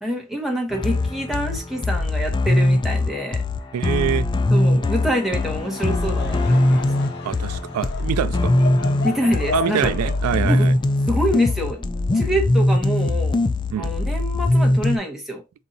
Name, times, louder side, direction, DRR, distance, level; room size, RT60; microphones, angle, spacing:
voice 1, 0.0-3.4 4.5-6.9 9.0-9.9 10.4-10.7 11.1-11.9 12.1-13.4 13.7-15.4, equal, ahead, 1.1 m, -26 dB
The Pact Full Version, 0.7-15.0, left 2 dB, 20° left, 0.3 m, -21 dB
voice 2, 3.7-4.3 7.2-8.5 9.5-10.7 12.3-12.4 13.7-13.9, right 9 dB, 85° right, 0.3 m, -25 dB
Laughter / Crowd, 5.5-12.0, left 4 dB, 50° left, 0.7 m, -34 dB
4.1 x 2.7 x 3.9 m
head